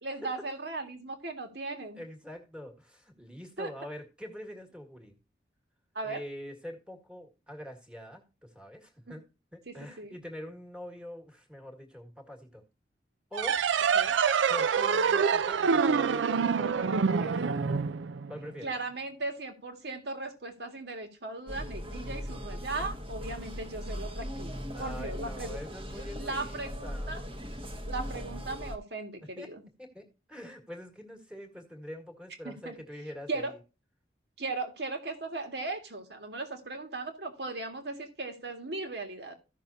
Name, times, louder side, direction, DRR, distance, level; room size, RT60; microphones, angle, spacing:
voice 1, 0.0-2.0 3.6-3.7 6.0-6.2 9.7-10.1 13.9-14.1 18.6-25.6 26.2-27.2 27.9-29.6 32.4-32.8 33.3-33.5 34.4-39.3, right 3 dB, 65° right, 5 dB, 1.9 m, -37 dB
voice 2, 2.0-5.2 6.0-9.2 9.5-12.6 13.3-13.6 14.5-17.5 18.3-18.7 24.7-27.2 29.4-29.5 29.8-33.6, left 1 dB, 5° right, 3 dB, 1.7 m, -44 dB
sound 1, 13.3-18.6, right 6 dB, 85° right, 0.5 m, -26 dB
sound 2, 21.5-28.8, equal, 30° right, 1.2 m, -39 dB
15.0 x 6.2 x 2.7 m, 0.30 s
head